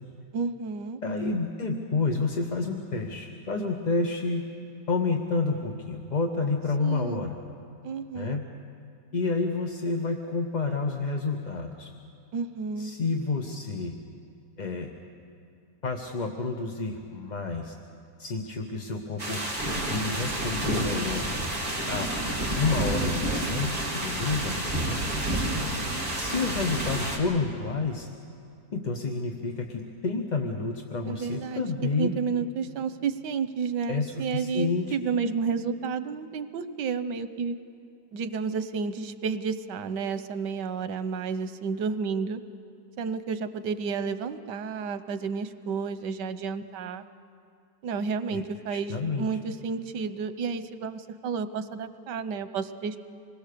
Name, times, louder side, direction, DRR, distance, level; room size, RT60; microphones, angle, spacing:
voice 1, 0.3-1.0 6.8-7.3 7.8-8.4 12.3-12.9 31.1-31.6 32.0-37.6 38.1-42.4 43.0-47.0 47.8-53.0, right 5 dB, 90° right, 12 dB, 1.5 m, -31 dB
voice 2, 1.0-4.4 4.9-7.4 8.1-8.5 9.1-11.9 12.8-14.0 14.6-14.9 15.8-17.7 18.2-19.4 19.9-21.3 21.9-22.1 22.5-25.3 26.1-28.1 28.7-32.2 33.9-35.0 48.3-48.4 48.7-49.3, left 3 dB, 30° left, 3 dB, 0.9 m, -29 dB
sound 1, 19.2-27.2, right 1 dB, 25° right, 3.6 m, -29 dB
26.5 x 20.5 x 6.8 m, 2.5 s
omnidirectional pair, 1.8 m